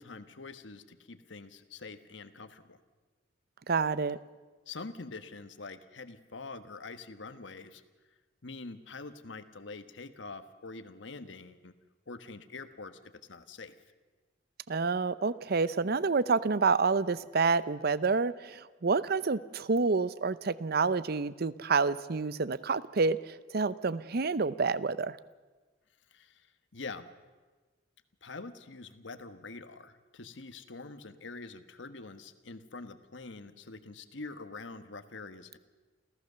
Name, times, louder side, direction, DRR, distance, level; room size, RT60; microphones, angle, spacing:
voice 1, 0.0-2.8 4.7-7.8 8.4-11.7 12.1-13.7 26.1-27.1 28.2-35.6, left 3 dB, 80° left, 10 dB, 1.4 m, -45 dB
voice 2, 3.7-4.2 14.7-25.2, right 4 dB, 55° right, 17 dB, 0.7 m, -28 dB
28.0 x 15.0 x 6.8 m, 1.3 s
head